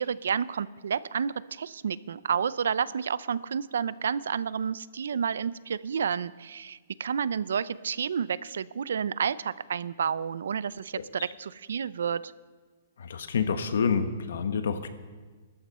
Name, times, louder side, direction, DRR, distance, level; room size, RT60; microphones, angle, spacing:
voice 1, 0.0-12.3, right 7 dB, 85° right, 18 dB, 0.5 m, -30 dB
voice 2, 13.0-14.9, left 6 dB, 80° left, 9 dB, 1.3 m, -28 dB
20.0 x 13.5 x 4.3 m, 1.4 s
hypercardioid pair, 160°, 0 cm